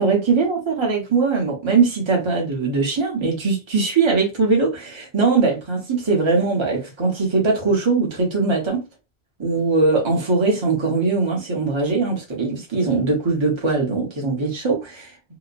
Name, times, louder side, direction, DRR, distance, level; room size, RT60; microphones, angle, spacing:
voice 1, 0.0-8.8 9.4-15.1, right 4 dB, 25° right, 0.9 m, -21 dB
2.9 x 2.1 x 2.5 m
omnidirectional pair, 1.1 m